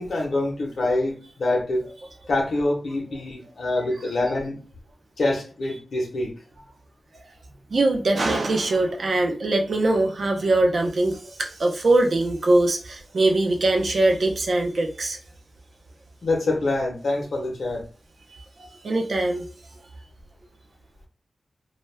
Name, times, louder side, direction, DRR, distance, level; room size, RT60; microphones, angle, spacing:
voice 1, 0.0-1.8 2.3-4.6 5.2-6.3 16.2-17.8, left 2 dB, 70° left, -1 dB, 0.7 m, -25 dB
voice 2, 7.7-15.2 18.8-19.4, right 2 dB, 60° right, 2 dB, 0.6 m, -22 dB
2.2 x 2.2 x 3.2 m, 0.38 s
wide cardioid pair, 110°, 0 cm